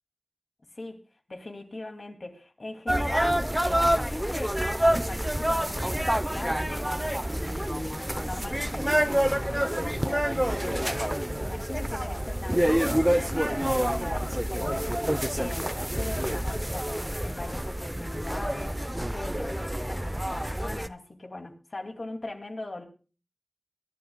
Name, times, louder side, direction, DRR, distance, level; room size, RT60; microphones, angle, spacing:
voice 1, 1.3-10.3 10.6-11.1 11.4-14.9 15.3-18.8 19.1-22.8, left 2 dB, 70° left, 4 dB, 2.5 m, -40 dB
sound 1, 2.9-20.9, equal, 15° right, 0.7 m, -27 dB
23.0 x 12.0 x 2.3 m, 0.36 s
wide cardioid pair, 45°, 0 cm